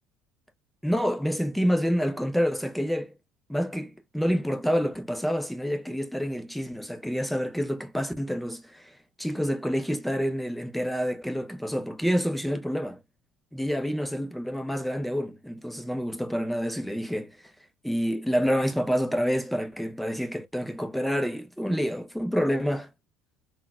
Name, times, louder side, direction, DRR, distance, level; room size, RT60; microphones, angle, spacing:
voice 1, 0.8-3.2 3.5-8.9 9.2-13.0 13.5-17.3 17.8-22.9, equal, ahead, 0.6 m, -28 dB
3.8 x 2.3 x 2.3 m
hypercardioid pair, 70°, 4 cm